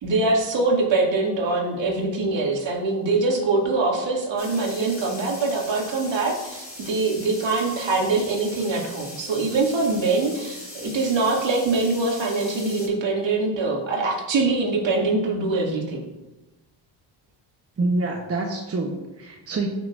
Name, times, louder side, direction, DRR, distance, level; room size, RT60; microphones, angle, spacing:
voice 1, 0.0-16.0, right 3 dB, 60° right, -2 dB, 2.5 m, -23 dB
sound 1, 4.4-12.9, left 1 dB, 20° left, 3.1 m, -40 dB
voice 2, 17.8-19.7, right 2 dB, 30° right, 1 dB, 1.1 m, -26 dB
13.0 x 6.1 x 2.6 m, 1.1 s
cardioid pair, 75°, 49 cm